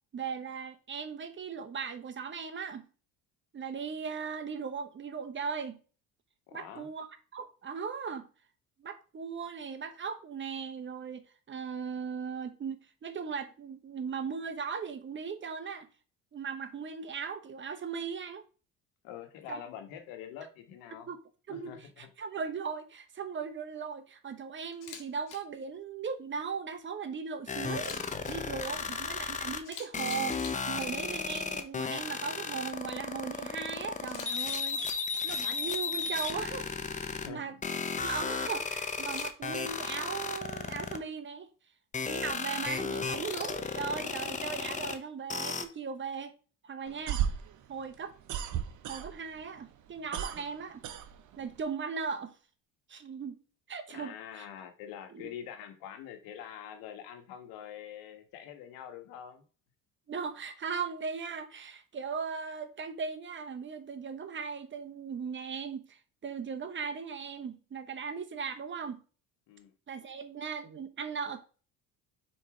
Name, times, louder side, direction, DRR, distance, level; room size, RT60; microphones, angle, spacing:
voice 1, 0.1-2.9 3.5-5.8 6.5-8.3 8.8-15.9 16.3-18.4 19.5-19.6 21.1-21.2 21.5-28.0 28.3-34.9 35.2-36.7 36.9-37.6 38.0-41.5 42.0-46.4 46.6-47.2 47.7-48.1 48.9-50.8 51.4-52.3 52.9-53.4 53.7-54.5 55.1-55.3 60.1-69.0 69.9-71.5, right 6 dB, 35° right, 1.0 m, -38 dB
voice 2, 6.5-6.9 19.0-21.1 21.5-22.1 28.7-29.0 37.1-37.5 53.9-59.4 69.5-69.7, left 9 dB, 90° left, 1.4 m, -45 dB
Camera, 24.7-25.0 25.3-25.4 27.7-28.3 29.3-29.4 29.6-30.9 34.1-35.0 39.0-39.6, left 7 dB, 65° left, 2.0 m, -45 dB
sound 1, 27.5-29.6 29.9-37.3 37.6-41.0 41.9-45.0 45.3-45.6, left 5 dB, 20° left, 0.8 m, -34 dB
sound 2, 46.9-49.4 49.7-51.6, right 9 dB, 60° right, 0.9 m, -34 dB
4.8 x 4.5 x 4.9 m
cardioid pair, 105°, 34 cm